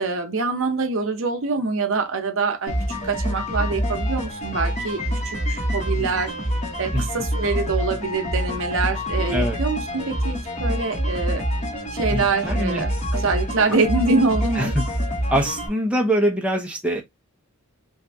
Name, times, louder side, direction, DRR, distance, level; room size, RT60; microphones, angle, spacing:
voice 1, 0.0-6.3 6.8-11.5 11.9-14.7, right 4 dB, 60° right, 0.7 m, -25 dB
sound 1, 2.7-15.7, equal, 35° left, 1.1 m, -26 dB
voice 2, 12.1-12.8 14.5-14.8 15.3-17.0, equal, 5° right, 0.5 m, -24 dB
2.7 x 2.5 x 3.4 m
head